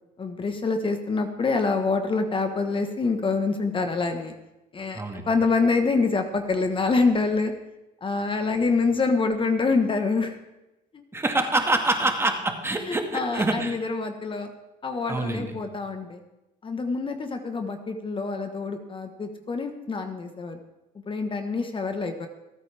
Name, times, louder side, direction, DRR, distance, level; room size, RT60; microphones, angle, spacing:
voice 1, 0.2-4.3 4.7-7.5 8.0-10.3 10.9-11.0 12.9-14.5 14.8-16.2 16.6-20.6 21.1-22.3, left 4 dB, 30° left, 6 dB, 1.3 m, -26 dB
voice 2, 4.9-5.3 11.1-13.8 15.1-15.5, right 2 dB, 15° right, 4 dB, 1.9 m, -25 dB
27.5 x 9.3 x 3.5 m, 0.98 s
cardioid pair, 110°, 17 cm